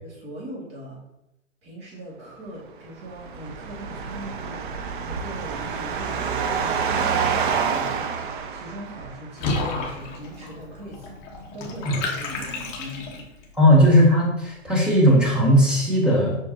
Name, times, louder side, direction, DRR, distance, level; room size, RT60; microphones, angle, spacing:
voice 1, 0.0-1.0 1.6-13.8, right 1 dB, 25° right, -4 dB, 2.6 m, -40 dB
sound 1, 3.0-9.3, right 6 dB, 40° right, 0.7 m, -27 dB
sound 2, 3.0-9.1, right 2 dB, 90° right, 1.9 m, -43 dB
Water / Bathtub (filling or washing), 9.4-13.4, left 3 dB, 30° left, 1.1 m, -31 dB
voice 2, 13.6-16.4, equal, ahead, -4 dB, 1.4 m, -17 dB
7.0 x 5.8 x 3.0 m, 0.89 s
hypercardioid pair, 135°, 38 cm